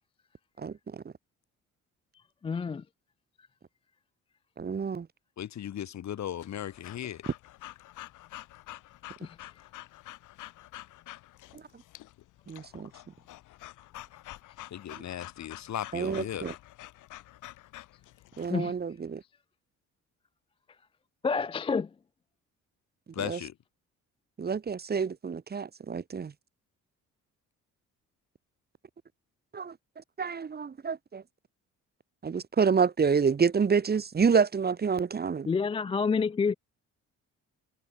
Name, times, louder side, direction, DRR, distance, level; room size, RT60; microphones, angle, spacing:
voice 1, 2.4-2.8 9.2-9.3 18.5-18.7 21.2-21.9 35.5-36.5, left 5 dB, 20° left, 0.3 m, -28 dB
voice 2, 4.6-5.1 12.5-12.9 15.9-16.5 18.4-19.2 23.2-23.4 24.4-26.3 29.5-29.7 30.2-31.2 32.2-35.5, right 6 dB, 30° right, 1.1 m, -28 dB
voice 3, 5.4-7.3 14.7-16.5 23.1-23.5, left 10 dB, 65° left, 2.8 m, -37 dB
Breathing / Dog, 6.4-18.5, left 16 dB, 85° left, 1.5 m, -48 dB
cardioid pair, 90°, 30 cm